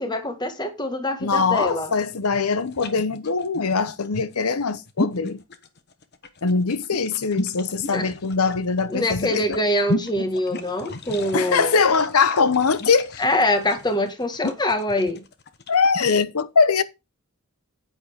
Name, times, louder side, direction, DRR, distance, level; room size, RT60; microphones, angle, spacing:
voice 1, 0.0-1.9 7.9-8.1 8.9-11.8 13.2-15.2, left 1 dB, 20° left, 1.5 m, -24 dB
voice 2, 1.2-5.4 6.4-9.4 11.3-13.2 15.7-16.8, left 5 dB, 85° left, 0.9 m, -22 dB
sound 1, 1.4-16.2, left 2 dB, 50° left, 1.1 m, -33 dB
9.5 x 8.9 x 3.5 m
head